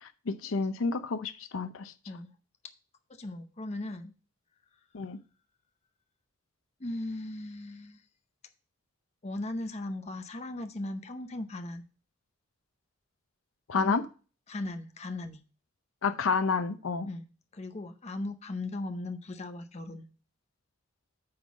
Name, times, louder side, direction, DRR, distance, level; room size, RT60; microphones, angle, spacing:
voice 1, 0.0-1.9 4.9-5.2 13.7-14.0 16.0-17.1, left 4 dB, 85° left, 0.6 m, -30 dB
voice 2, 3.1-4.1 6.8-8.0 9.2-11.8 13.7-14.0 14.5-15.4 17.1-17.3 17.5-20.1, left 2 dB, 35° left, 0.7 m, -37 dB
8.7 x 3.8 x 6.2 m
head